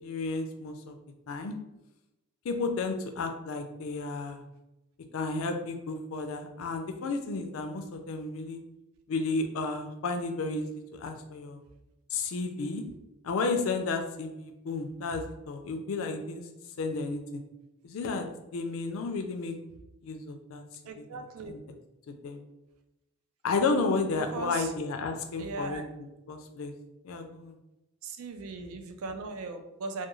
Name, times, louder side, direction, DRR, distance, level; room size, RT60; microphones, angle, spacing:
voice 1, 0.0-1.0 1.3-1.5 2.4-4.4 5.1-8.6 9.1-11.6 12.1-12.8 13.2-16.4 16.8-17.4 17.8-18.3 18.5-19.6 20.0-20.6 21.0-21.1 21.4-21.6 22.1-22.4 23.4-26.7 27.0-27.6, left 3 dB, 75° left, 6 dB, 0.4 m, -32 dB
voice 2, 20.9-21.5 24.3-24.7 25.4-25.8 28.0-30.1, right 3 dB, 85° right, 7 dB, 0.4 m, -38 dB
2.3 x 2.2 x 3.0 m, 0.94 s
head